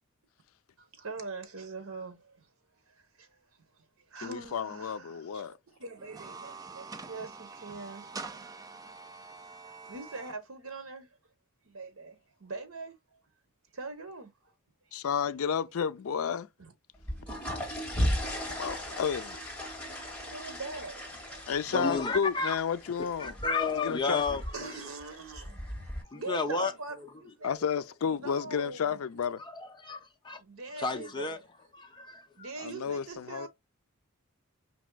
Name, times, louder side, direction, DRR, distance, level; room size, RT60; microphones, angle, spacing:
voice 1, 0.8-2.5 2.8-8.5 9.3-9.4 9.6-11.2 11.6-13.2 13.7-14.5 14.9-15.0 16.6-16.7 17.7-18.2 18.5-19.0 20.3-21.5 24.5-25.6 26.1-27.6 28.1-29.0 30.4-31.4 32.4-33.5, right 3 dB, 70° right, 1.0 m, -43 dB
voice 2, 4.2-5.5 14.9-16.5 18.6-19.4 21.5-23.3 23.8-24.2 27.4-29.4 32.6-33.5, left 7 dB, 70° left, 0.4 m, -31 dB
sound 1, 6.0-10.3, right 4 dB, 15° right, 0.4 m, -45 dB
sound 2, 16.9-26.0, equal, 5° left, 2.2 m, -37 dB
voice 3, 21.7-22.6 23.2-24.8 26.1-26.7 29.4-30.4 30.7-31.4 31.7-32.5, left 3 dB, 20° left, 0.6 m, -32 dB
5.2 x 3.0 x 2.2 m
head